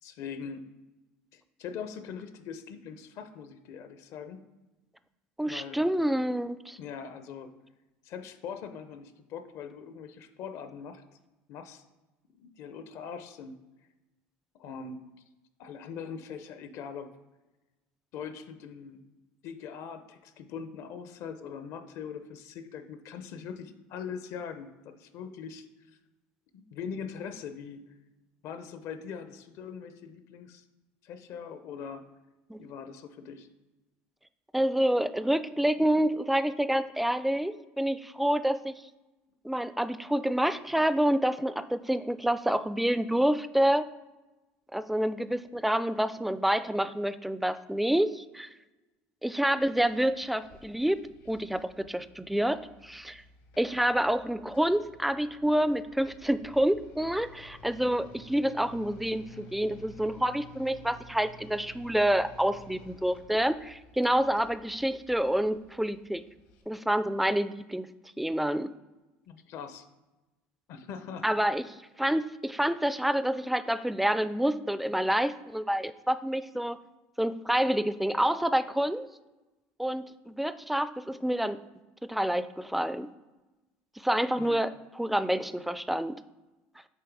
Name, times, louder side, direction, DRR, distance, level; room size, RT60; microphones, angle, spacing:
voice 1, 0.0-0.6 1.3-4.4 5.4-5.8 6.8-7.5 8.0-11.0 11.5-11.8 12.4-13.6 14.5-15.0 15.6-17.1 18.1-19.0 19.4-25.7 26.5-27.8 28.4-30.6 31.0-32.1 32.6-33.5 69.3-69.9 70.7-71.6 84.4-84.6, left 6 dB, 60° left, 9 dB, 0.6 m, -41 dB
voice 2, 5.4-6.8 32.5-32.6 34.5-38.7 39.4-43.9 44.7-48.5 49.2-51.0 51.3-53.2 53.6-66.2 66.7-67.9 68.2-68.7 71.2-76.8 77.2-79.1 79.8-81.6 82.0-83.1 84.0-86.2, right 1 dB, ahead, 13 dB, 0.3 m, -28 dB
sound 1, 49.6-66.6, left 1 dB, 80° left, 1.3 m, -53 dB
7.6 x 3.1 x 4.6 m, 1.1 s
supercardioid pair, 95°, 6 cm